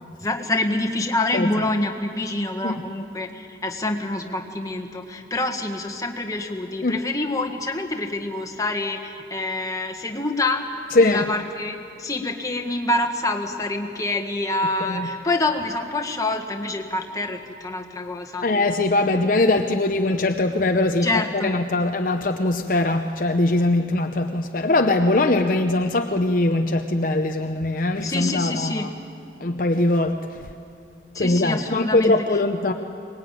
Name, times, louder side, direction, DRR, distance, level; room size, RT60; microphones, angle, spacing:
voice 1, 0.2-18.5 21.0-21.5 28.0-28.9 31.1-32.4, left 2 dB, 20° left, 3 dB, 1.6 m, -26 dB
voice 2, 18.4-21.1 21.3-28.9 29.4-30.2 31.2-32.7, left 2 dB, 50° left, 5 dB, 0.8 m, -21 dB
23.5 x 20.0 x 9.1 m, 2.6 s
head